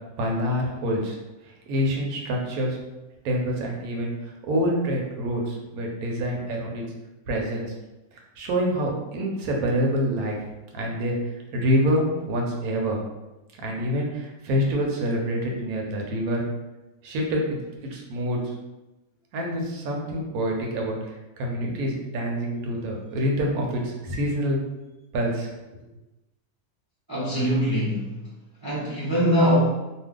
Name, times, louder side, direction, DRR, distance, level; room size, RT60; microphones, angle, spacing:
voice 1, 0.2-1.2 1.7-2.8 3.2-4.1 4.4-6.8 7.3-7.7 8.4-10.4 10.7-11.1 11.5-13.0 13.6-16.4 17.0-18.4 19.3-21.0 21.4-24.6 25.1-25.5, equal, 80° right, 0 dB, 1.1 m, -26 dB
voice 2, 27.1-28.2 28.6-29.7, equal, 25° right, -8 dB, 0.5 m, -22 dB
2.6 x 2.3 x 3.5 m, 1.0 s
omnidirectional pair, 1.6 m